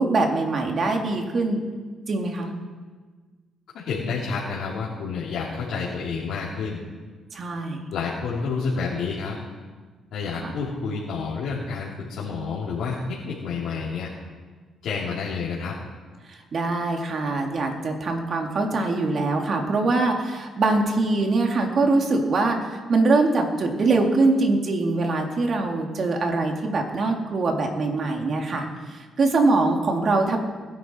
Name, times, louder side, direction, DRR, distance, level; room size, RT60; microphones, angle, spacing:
voice 1, 0.0-1.6 2.1-2.5 7.3-7.8 10.4-10.5 16.3-30.4, right 3 dB, 50° right, 2 dB, 2.5 m, -23 dB
voice 2, 3.7-6.8 7.9-9.3 10.1-14.1 14.8-15.7, left 5 dB, 80° left, -8 dB, 2.9 m, -29 dB
21.0 x 11.0 x 4.5 m, 1.4 s
cardioid pair, 90°, 0 cm